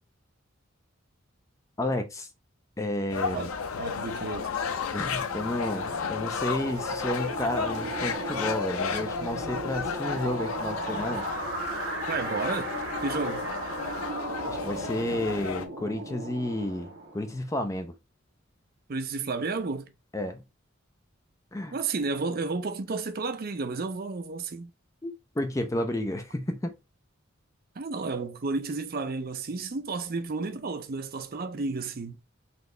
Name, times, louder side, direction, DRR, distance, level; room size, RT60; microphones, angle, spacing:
voice 1, 1.8-2.3 2.8-3.5 4.9-11.3 14.5-17.9 20.1-20.4 21.5-21.8 25.0-26.7, left 1 dB, 15° left, 0.4 m, -31 dB
sound 1, 3.1-15.7, left 6 dB, 90° left, 0.6 m, -33 dB
voice 2, 3.8-4.5 12.1-12.7 13.0-13.4 18.9-19.9 21.7-24.7 27.8-32.2, right 4 dB, 45° right, 0.5 m, -32 dB
sound 2, 4.8-17.4, right 2 dB, 60° right, 1.4 m, -36 dB
4.2 x 2.8 x 3.2 m
head